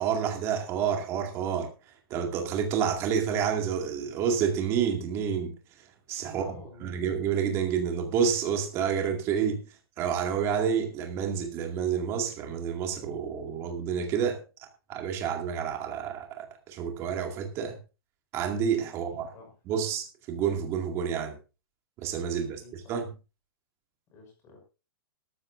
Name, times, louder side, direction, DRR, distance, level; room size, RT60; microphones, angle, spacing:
voice 1, 0.0-1.7 2.1-6.4 6.8-9.6 10.0-14.4 14.9-17.8 18.3-19.3 19.7-21.3 22.0-23.1, right 7 dB, 20° right, 3 dB, 2.1 m, -29 dB
voice 2, 6.3-6.9 19.1-19.5 22.6-23.0 24.1-24.6, left 2 dB, 20° left, 3 dB, 5.7 m, -50 dB
17.0 x 13.5 x 2.6 m, 0.32 s
supercardioid pair, 175°, 13 cm